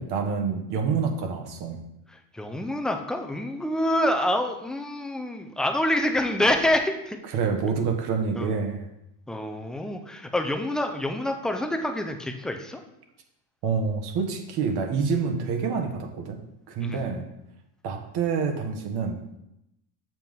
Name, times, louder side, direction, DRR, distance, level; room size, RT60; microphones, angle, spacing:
voice 1, 0.0-1.8 7.3-8.8 13.6-16.4 16.7-17.2 17.8-19.4, right 5 dB, 55° right, 3 dB, 1.4 m, -27 dB
voice 2, 2.1-7.2 8.4-8.5 9.3-12.8 16.8-17.1, left 1 dB, ahead, 4 dB, 0.3 m, -27 dB
7.2 x 6.0 x 3.6 m, 0.86 s
cardioid pair, 130°, 46 cm